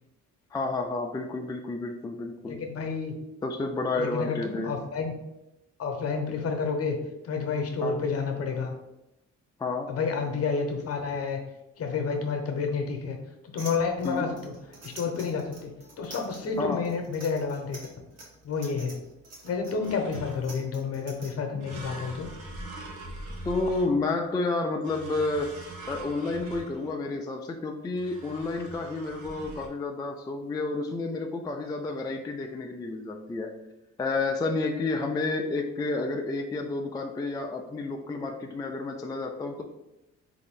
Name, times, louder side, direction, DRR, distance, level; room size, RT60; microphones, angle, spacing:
voice 1, 0.5-2.6 3.4-4.7 7.8-8.0 9.6-9.9 14.0-14.3 16.6-16.8 23.5-25.5 25.9-33.5 34.0-39.6, left 3 dB, 15° left, 3 dB, 0.3 m, -30 dB
voice 2, 2.5-3.1 4.0-5.1 5.8-7.0 7.2-8.7 9.9-11.4 11.8-13.2 13.4-14.5 14.8-17.8 18.4-19.0 19.4-22.3, left 5 dB, 55° left, 4 dB, 0.8 m, -30 dB
sound 1, 13.6-21.3, right 2 dB, 55° right, 1.2 m, -46 dB
sound 2, 19.8-20.6 21.6-24.3 24.8-27.1 28.0-29.7, right 1 dB, 90° right, 0.9 m, -42 dB
3.7 x 2.6 x 3.6 m, 0.92 s
cardioid pair, 90°, 30 cm